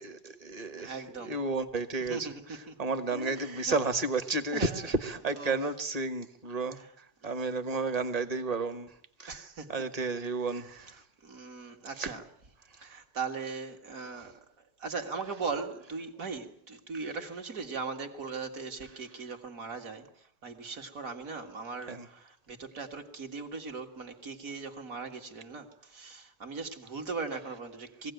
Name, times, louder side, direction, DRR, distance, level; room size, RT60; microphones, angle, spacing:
voice 1, 0.0-8.9 9.2-9.4 9.7-10.9 12.0-12.1 21.9-22.1, right 3 dB, 25° right, 9 dB, 1.2 m, -32 dB
voice 2, 0.8-1.4 2.1-2.8 3.1-3.8 4.5-4.9 5.4-5.6 6.8-6.9 7.2-7.3 9.3-9.7 10.5-11.0 11.2-12.2 12.8-14.4 14.8-20.1 20.4-28.1, right 4 dB, 50° right, 4 dB, 2.1 m, -39 dB
22.0 x 16.5 x 9.2 m, 0.70 s
omnidirectional pair, 1.8 m